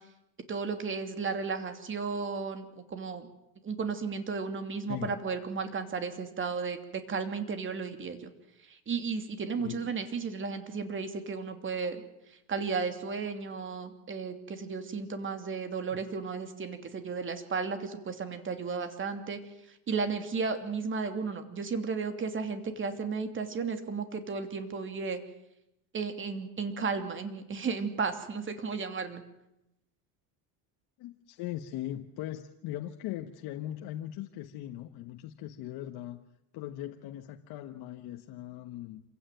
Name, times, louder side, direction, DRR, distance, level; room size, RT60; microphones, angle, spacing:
voice 1, 0.5-3.3 3.6-8.3 8.7-12.0 12.5-19.4 19.9-25.2 25.9-29.2, right 5 dB, 30° right, 8 dB, 3.0 m, -34 dB
voice 2, 9.6-9.9 15.9-16.0 31.0-36.2 36.5-39.0, left 13 dB, 60° left, 5 dB, 1.4 m, -39 dB
27.0 x 16.5 x 9.2 m, 0.88 s
cardioid pair, 130°, 43 cm